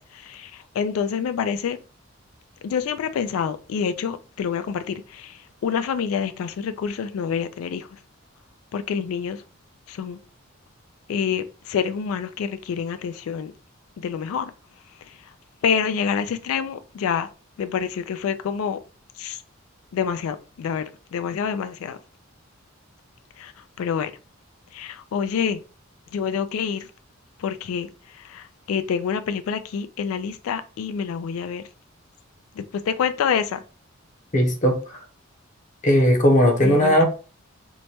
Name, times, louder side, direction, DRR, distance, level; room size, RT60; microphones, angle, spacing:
voice 1, 0.0-1.8 2.6-7.9 8.7-9.4 9.9-10.2 11.1-13.5 14.0-14.5 15.6-17.3 17.6-18.8 19.2-19.4 19.9-20.8 21.1-22.0 23.4-23.5 23.8-24.1 24.7-25.6 26.1-26.9 27.4-27.9 28.2-31.6 32.6-33.6 36.6-37.0, left 7 dB, 90° left, 0.3 m, -27 dB
voice 2, 34.3-34.8 35.8-37.0, equal, 35° left, 0.7 m, -17 dB
4.4 x 2.2 x 2.8 m
head